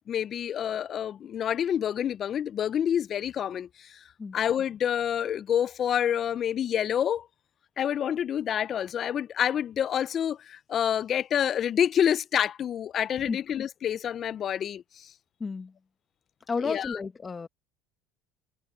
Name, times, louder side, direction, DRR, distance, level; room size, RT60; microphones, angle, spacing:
voice 1, 0.1-4.0 4.3-7.3 7.8-15.1 16.6-17.0, left 9 dB, 45° left, 0.4 m, -28 dB
voice 2, 15.4-15.7 16.5-17.5, left 4 dB, 25° left, 1.5 m, -32 dB
supercardioid pair, 105°, 0 cm